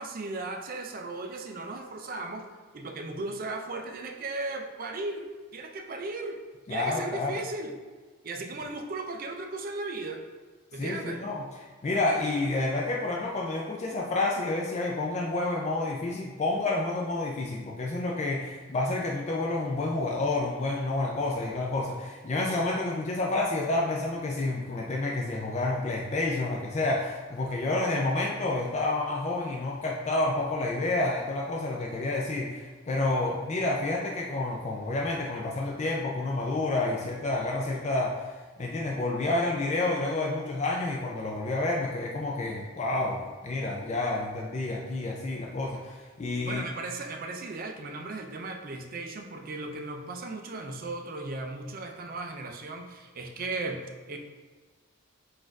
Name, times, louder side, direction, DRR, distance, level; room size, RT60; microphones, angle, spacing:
voice 1, 0.0-6.4 6.7-7.8 8.2-10.2 10.7-11.2 46.4-54.2, right 2 dB, 45° right, 4 dB, 0.4 m, -36 dB
voice 2, 6.7-7.3 10.8-11.4 11.8-46.6, left 2 dB, 35° left, -2 dB, 0.4 m, -29 dB
4.1 x 2.5 x 4.5 m, 1.4 s
head